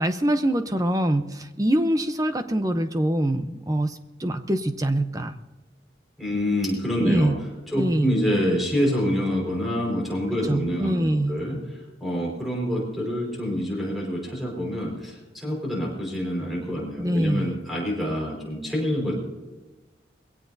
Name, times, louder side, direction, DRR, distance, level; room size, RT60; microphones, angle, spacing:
voice 1, 0.0-5.4 7.0-7.4 7.7-8.2 10.4-11.4 17.0-17.5, right 1 dB, 20° right, 8 dB, 0.8 m, -24 dB
voice 2, 6.2-7.3 7.7-11.6 12.0-19.1, equal, ahead, -2 dB, 4.8 m, -26 dB
22.5 x 17.0 x 2.7 m, 1.1 s
head